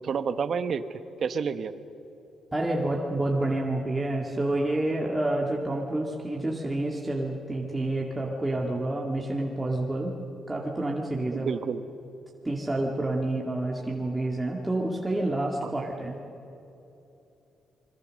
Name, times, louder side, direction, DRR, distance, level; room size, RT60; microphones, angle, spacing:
voice 1, 0.0-1.7 11.3-11.8 15.6-15.7, right 6 dB, 55° right, 11 dB, 1.2 m, -30 dB
voice 2, 2.5-10.1 10.5-11.5 12.4-16.2, right 1 dB, 15° right, -1 dB, 2.1 m, -28 dB
27.5 x 22.5 x 6.5 m, 2.9 s
cardioid pair, 105°, 0 cm